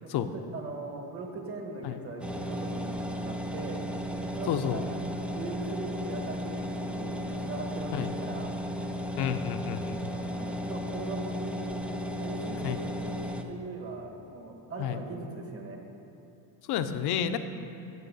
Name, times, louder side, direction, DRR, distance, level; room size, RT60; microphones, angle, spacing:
voice 1, 0.0-3.8 4.2-8.5 10.1-11.8 12.2-13.2 13.5-15.8, right 3 dB, 30° right, 2 dB, 1.5 m, -40 dB
sound 1, 2.2-13.4, equal, 5° right, 0.4 m, -35 dB
voice 2, 4.5-4.9 7.9-8.1 9.2-10.0 12.6-12.8 14.8-15.0 16.7-17.4, left 9 dB, 50° left, 9 dB, 0.8 m, -30 dB
15.0 x 5.6 x 5.5 m, 2.9 s
supercardioid pair, 105°, 49 cm